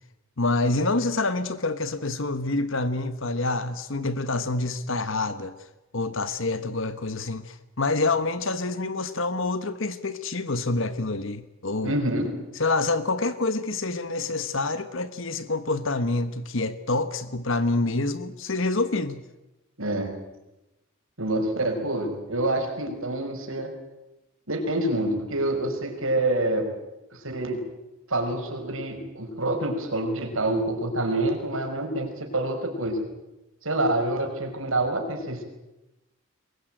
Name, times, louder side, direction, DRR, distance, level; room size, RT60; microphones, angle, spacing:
voice 1, 0.4-5.5 5.9-11.9 12.6-19.2, left 2 dB, 65° left, 12 dB, 1.3 m, -27 dB
voice 2, 11.8-12.4 19.8-20.2 21.2-23.7 24.5-26.7 27.1-27.6 28.1-33.0 33.6-35.4, right 1 dB, 75° right, 3 dB, 5.8 m, -27 dB
23.0 x 21.5 x 9.1 m, 0.98 s
head